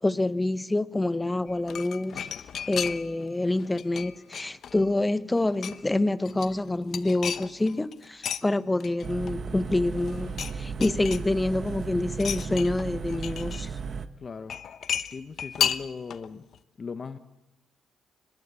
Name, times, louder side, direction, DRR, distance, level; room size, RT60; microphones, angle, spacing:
voice 1, 0.0-2.3 2.7-13.8, left 2 dB, 15° left, 0.9 m, -27 dB
sound 1, 1.5-3.2 3.5-4.9 5.3-5.9 6.2-8.4 8.8-9.7 10.0-10.5 10.8-11.7 12.1-13.6 14.5-16.3 16.5-16.6, left 8 dB, 60° left, 1.0 m, -33 dB
sound 2, 9.0-14.1, right 5 dB, 50° right, 1.3 m, -35 dB
voice 2, 14.2-14.6 15.0-16.4 16.8-17.2, left 5 dB, 40° left, 1.3 m, -38 dB
24.0 x 21.5 x 8.3 m
cardioid pair, 90°, 0 cm